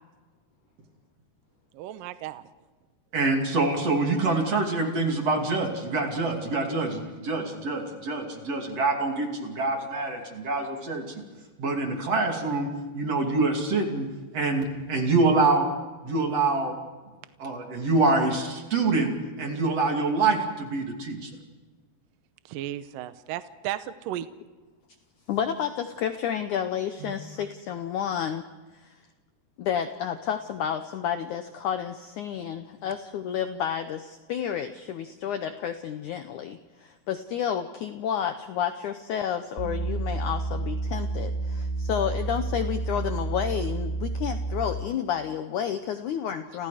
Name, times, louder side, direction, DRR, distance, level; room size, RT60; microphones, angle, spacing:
voice 1, 1.7-2.4 22.5-24.3, right 13 dB, 75° right, 11 dB, 2.2 m, -34 dB
voice 2, 3.1-11.2 11.6-15.7 16.0-16.8 17.4-21.3 27.0-27.1, right 3 dB, 40° right, 2 dB, 3.3 m, -26 dB
voice 3, 25.3-28.5 28.8-28.9 29.6-46.7, left 9 dB, 85° left, 9 dB, 1.7 m, -30 dB
sound 1, 39.6-44.9, right 3 dB, 15° right, 6.9 m, -30 dB
30.0 x 27.5 x 5.0 m, 1.3 s
omnidirectional pair, 4.8 m